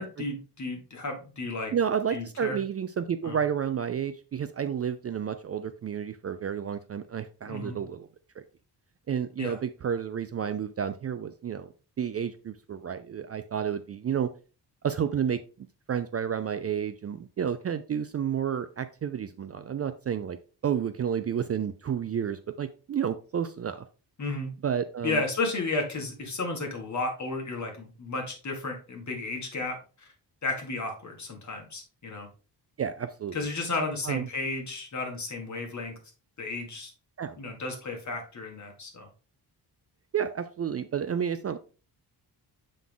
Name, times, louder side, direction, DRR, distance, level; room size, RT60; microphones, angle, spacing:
voice 1, 0.0-1.7 2.1-2.6 3.2-3.4 7.5-7.8 9.4-9.6 24.2-24.5 25.0-30.1 30.4-32.3 33.3-35.9 36.4-36.9 37.4-39.1, left 3 dB, 45° left, 2 dB, 2.1 m, -33 dB
voice 2, 1.7-8.1 9.1-11.7 12.0-14.3 14.8-20.4 20.6-23.9 24.6-25.2 32.8-33.4 34.0-34.3 37.2-37.3 40.1-41.6, right 8 dB, 40° right, 11 dB, 0.4 m, -31 dB
7.3 x 3.9 x 3.7 m, 0.36 s
wide cardioid pair, 120°, 41 cm